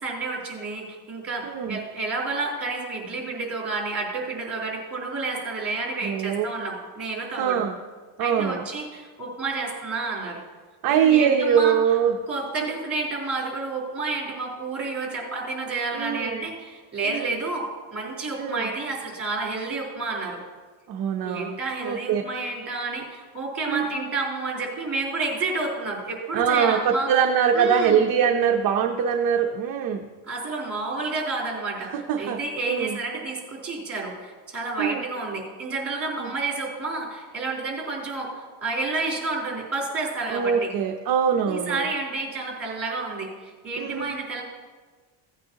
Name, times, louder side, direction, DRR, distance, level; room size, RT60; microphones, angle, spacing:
voice 1, 0.0-7.6 8.2-10.4 11.0-11.8 12.3-20.4 21.2-27.1 27.5-28.1 30.2-31.9 32.2-40.7 41.5-44.4, right 3 dB, 30° right, -2 dB, 4.0 m, -30 dB
voice 2, 1.4-1.8 6.0-6.5 7.3-7.8 8.2-8.7 10.8-12.2 15.9-16.5 17.0-17.4 18.4-18.7 20.9-21.6 21.8-22.2 23.6-23.9 26.3-30.1 31.9-33.0 34.8-35.0 36.2-36.3 40.3-41.9 43.8-44.1, right 7 dB, 45° right, 3 dB, 0.8 m, -23 dB
17.0 x 9.0 x 2.9 m, 1.4 s
cardioid pair, 135°, 47 cm